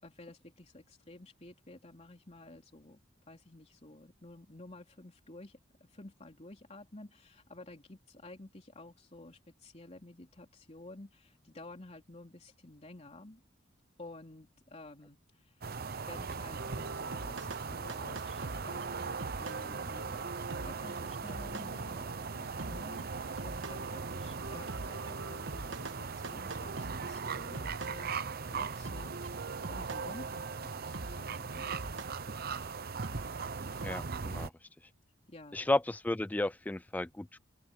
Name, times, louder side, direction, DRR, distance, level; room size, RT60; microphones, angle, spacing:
voice 1, 0.0-3.0 3.3-5.6 5.9-13.4 14.0-15.6 16.0-19.1 19.4-28.2 28.5-29.4 29.7-31.8 35.3-35.6, left 2 dB, 35° left, 3.4 m, -52 dB
sound 1, 15.6-34.5, right 5 dB, 55° right, 0.8 m, -39 dB
sound 2, 16.5-33.9, right 3 dB, 75° right, 1.4 m, -45 dB
voice 2, 33.8-34.5 35.5-37.4, left 2 dB, 10° left, 0.3 m, -33 dB
open air
head